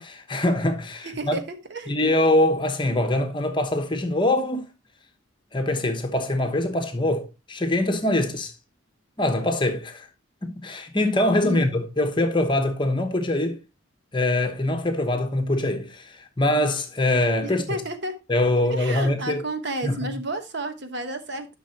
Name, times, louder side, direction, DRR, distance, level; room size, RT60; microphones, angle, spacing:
voice 1, 0.0-1.4 1.9-4.7 5.5-8.5 9.2-10.1 10.4-13.6 14.1-17.8 18.3-19.4 19.8-20.1, left 1 dB, 25° left, 1.0 m, -23 dB
voice 2, 1.0-1.9 11.4-11.6 17.4-18.2 18.6-21.5, right 1 dB, 55° right, 1.1 m, -32 dB
11.0 x 6.1 x 2.8 m
head